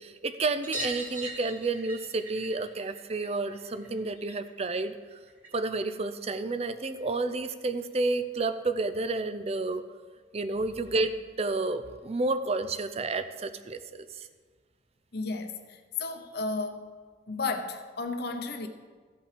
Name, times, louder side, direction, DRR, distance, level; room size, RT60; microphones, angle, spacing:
voice 1, 0.0-4.9 5.5-9.8 10.3-14.3, right 3 dB, 35° right, 0.5 m, -30 dB
sound 1, 0.6-5.7 6.0-7.2 8.5-8.6 8.8-8.9 9.2-9.3 10.6-10.7 11.0-11.1 11.4-11.5 12.8-12.9 13.6-13.7, right 1 dB, 10° right, 1.9 m, -42 dB
voice 2, 15.1-16.9 17.3-18.7, left 3 dB, 60° left, 0.8 m, -33 dB
14.5 x 5.6 x 5.0 m
head